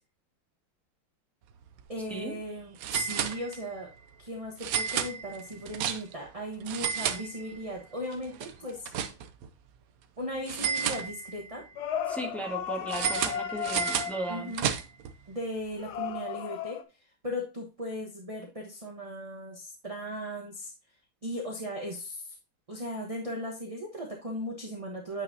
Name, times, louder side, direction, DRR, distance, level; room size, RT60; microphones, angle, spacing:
sound 1, 1.6-1.8 2.1-2.2 2.8-3.8 4.6-6.3 6.6-7.8 8.1-9.5 10.5-11.6 12.9-15.1, right 8 dB, 85° right, 0.8 m, -32 dB
voice 1, 1.9-3.9 4.2-8.9 10.2-11.6 14.3-14.7 15.3-16.8 17.2-20.7 21.2-22.3 22.7-25.2, equal, 25° right, -1 dB, 0.9 m, -37 dB
sound 2, 11.8-14.4 15.8-16.8, left 9 dB, 70° left, 1.0 m, -34 dB
voice 2, 12.1-14.5, right 1 dB, ahead, 0 dB, 1.3 m, -36 dB
9.1 x 5.5 x 2.7 m, 0.29 s
omnidirectional pair, 2.3 m